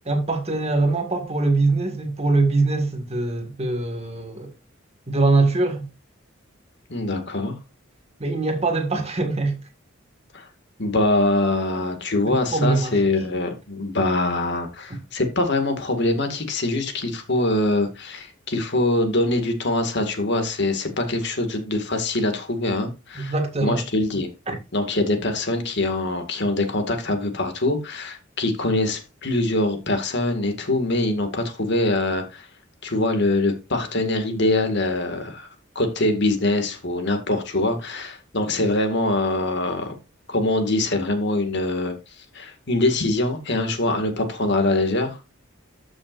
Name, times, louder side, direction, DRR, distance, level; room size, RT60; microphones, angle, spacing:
voice 1, 0.1-4.5 5.1-5.9 8.2-9.6 12.3-13.0 14.9-15.0 23.2-23.8 24.5-24.6, right 3 dB, 30° right, 1.8 m, -22 dB
voice 2, 6.9-7.6 10.3-10.5 10.8-23.3 23.6-24.3 24.7-32.5 32.8-35.5 35.8-39.9 40.3-42.0 42.3-45.2, left 2 dB, 55° left, 2.0 m, -23 dB
13.5 x 6.3 x 2.6 m
head